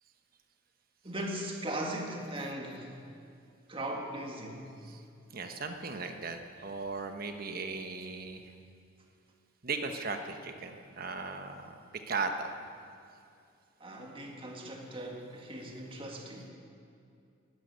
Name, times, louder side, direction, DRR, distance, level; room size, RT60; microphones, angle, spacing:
voice 1, 1.0-3.0 3.7-4.7 13.8-16.5, right 1 dB, 25° right, 0 dB, 1.9 m, -38 dB
voice 2, 5.3-8.4 9.6-12.6, right 4 dB, 50° right, 6 dB, 1.2 m, -37 dB
12.0 x 12.0 x 9.5 m, 2.5 s
head